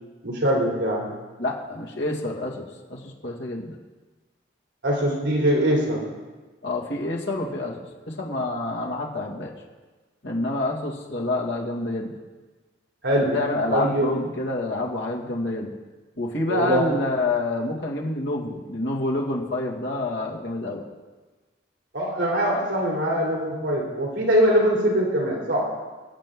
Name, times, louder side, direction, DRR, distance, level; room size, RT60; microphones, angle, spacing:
voice 1, 0.2-1.1 4.8-6.0 13.0-13.4 13.7-14.1 16.5-16.9 21.9-25.7, equal, 75° right, -2 dB, 3.1 m, -22 dB
voice 2, 1.4-3.8 6.6-9.5 10.2-12.1 13.2-15.7 16.2-20.8, left 2 dB, 70° left, -2 dB, 2.1 m, -28 dB
23.0 x 7.7 x 3.8 m, 1.3 s
head